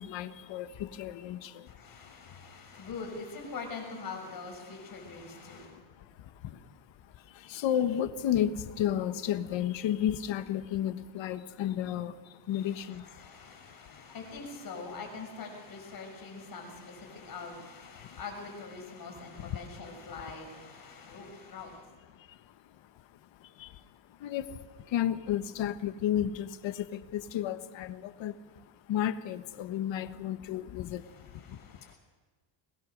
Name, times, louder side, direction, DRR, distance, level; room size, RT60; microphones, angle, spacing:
voice 1, 0.0-1.7 5.3-6.7 7.1-13.2 13.9-14.0 16.1-16.2 17.1-17.3 17.9-18.2 19.2-19.6 20.1-20.2 21.7-21.8 22.1-23.8 24.1-31.9, left 10 dB, 65° left, 10 dB, 1.5 m, -34 dB
voice 2, 1.7-5.7 13.1-21.8 31.5-32.0, left 4 dB, 45° left, 3 dB, 6.6 m, -43 dB
22.5 x 20.0 x 6.6 m, 1.4 s
cardioid pair, 135°, 49 cm